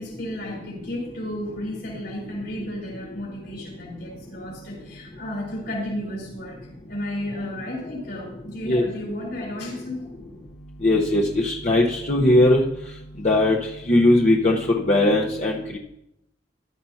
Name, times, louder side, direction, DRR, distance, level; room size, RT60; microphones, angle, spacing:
voice 1, 0.0-6.6 6.9-10.1, left 1 dB, 65° left, -3 dB, 4.3 m, -33 dB
voice 2, 10.8-12.6 13.2-13.6 13.9-14.6 14.9-15.8, left 1 dB, 40° left, -2 dB, 1.0 m, -19 dB
14.5 x 12.0 x 2.8 m, 0.82 s
head